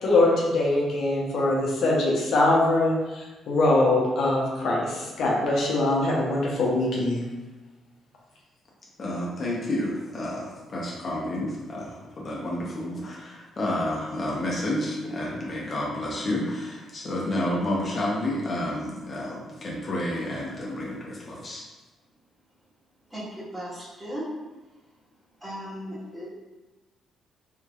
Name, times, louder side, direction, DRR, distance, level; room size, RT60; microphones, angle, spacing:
voice 1, 0.0-7.2, left 2 dB, 70° left, -4 dB, 0.8 m, -23 dB
voice 2, 9.0-21.6, left 1 dB, 45° left, -4 dB, 0.8 m, -30 dB
voice 3, 23.1-24.3 25.4-26.3, equal, 15° right, -9 dB, 1.5 m, -36 dB
3.6 x 3.1 x 2.4 m, 1.2 s
cardioid pair, 90°, 0 cm